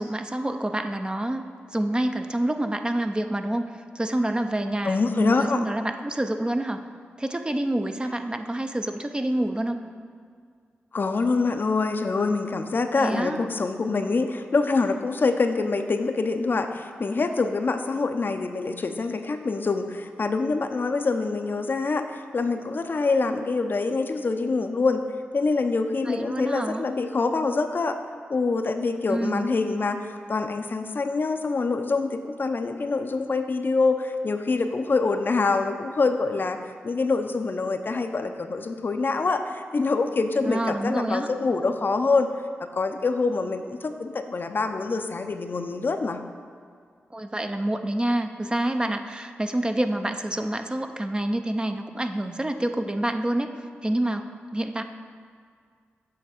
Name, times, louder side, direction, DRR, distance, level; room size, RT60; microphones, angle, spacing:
voice 1, 0.0-6.8 7.2-9.8 13.0-13.4 26.0-26.8 29.1-29.6 40.4-41.3 47.1-54.3 54.5-54.8, right 1 dB, 20° right, 7 dB, 0.5 m, -27 dB
voice 2, 4.8-5.6 10.9-25.0 25.3-28.0 28.3-42.3 42.6-46.2, left 3 dB, 50° left, 7 dB, 0.5 m, -25 dB
7.7 x 3.4 x 6.5 m, 2.1 s
supercardioid pair, 45°, 4 cm